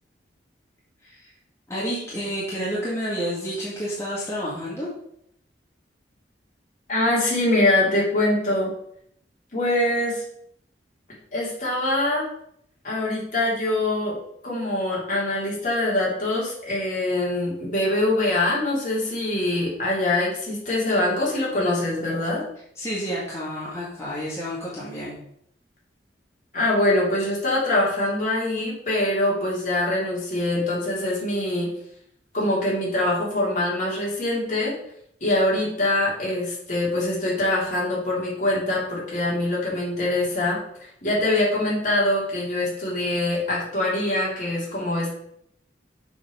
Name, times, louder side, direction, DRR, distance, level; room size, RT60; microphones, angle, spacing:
voice 1, 1.7-4.9 22.8-25.1, equal, 15° left, -8 dB, 1.9 m, -30 dB
voice 2, 6.9-8.7 9.5-10.2 11.3-12.2 12.8-14.2 14.4-22.4 26.5-31.7 32.3-34.7 35.2-40.6 41.0-45.1, left 1 dB, 45° left, -6 dB, 3.2 m, -23 dB
6.9 x 4.6 x 5.6 m, 0.70 s
head